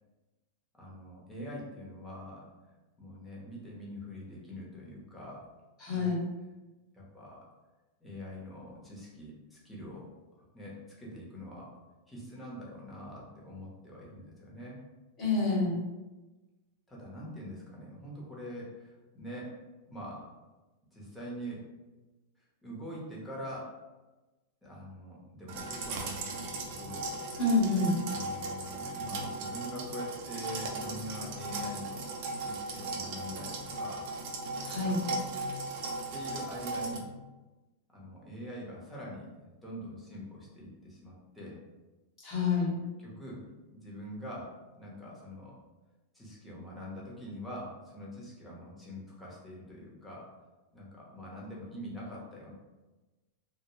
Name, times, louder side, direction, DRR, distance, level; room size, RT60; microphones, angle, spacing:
voice 1, 0.7-2.5 3.0-5.5 5.9-6.1 6.9-7.5 8.0-10.1 10.3-11.7 12.1-14.8 16.9-19.5 19.9-20.3 20.9-21.7 22.4-23.7 24.6-27.1 28.1-32.1 32.4-34.1 34.8-35.0 35.3-35.4 35.9-37.1 37.9-41.6 43.0-43.4 43.7-45.6 46.1-50.3 50.7-52.5, equal, 5° left, -6 dB, 0.9 m, -44 dB
voice 2, 5.8-6.2 15.2-15.7 27.4-27.9 34.6-35.0 42.2-42.8, left 3 dB, 35° left, -5 dB, 1.2 m, -27 dB
sound 1, 25.5-37.0, right 2 dB, 55° right, 0.5 m, -37 dB
2.2 x 2.1 x 3.0 m, 1.1 s
hypercardioid pair, 120°, 0 cm